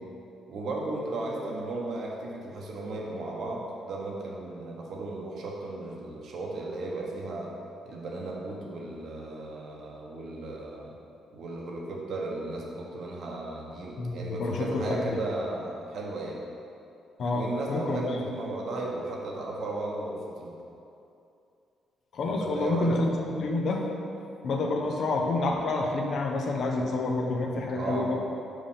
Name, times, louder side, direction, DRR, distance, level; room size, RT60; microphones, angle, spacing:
voice 1, 0.5-7.5 7.8-10.9 11.3-16.4 17.3-20.5 22.4-22.9 27.7-28.2, right 2 dB, 70° right, -2 dB, 1.2 m, -35 dB
voice 2, 14.0-15.1 17.2-18.2 22.1-23.9 24.4-28.1, left 2 dB, 60° left, 1 dB, 0.9 m, -28 dB
5.2 x 4.8 x 5.7 m, 2.6 s
cardioid pair, 90°, 0 cm